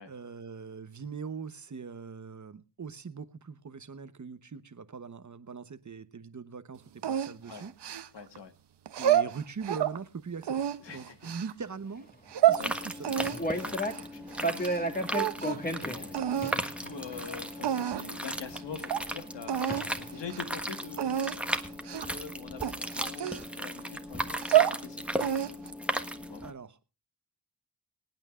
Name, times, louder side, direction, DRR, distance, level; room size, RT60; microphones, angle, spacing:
voice 1, 0.0-7.7 9.0-12.1 12.5-13.2 26.4-26.8, right 5 dB, 45° right, 1.1 m, -41 dB
sound 1, 7.0-8.4 8.9-10.0 10.4-11.5 12.1-12.6 13.0-14.8 15.1-15.7 16.1-16.6 17.2-17.3 17.6-18.2 18.5-18.6 18.9-19.0 19.5-19.9 20.2-20.4 21.0-21.4 21.8-22.2 22.6-23.8 24.3-24.8 25.2-25.7, right 11 dB, 70° right, 0.9 m, -28 dB
voice 2, 8.1-8.5 10.8-11.3 12.6-25.7 26.3-26.4, left 6 dB, 75° left, 1.7 m, -46 dB
sound 2, 12.5-26.5, equal, 5° right, 1.3 m, -37 dB
sound 3, 13.2-14.2 14.4-18.1 19.1-19.2 19.7-20.1 20.4-20.8, equal, 20° left, 2.2 m, -34 dB
25.5 x 9.0 x 2.5 m
cardioid pair, 60°, 43 cm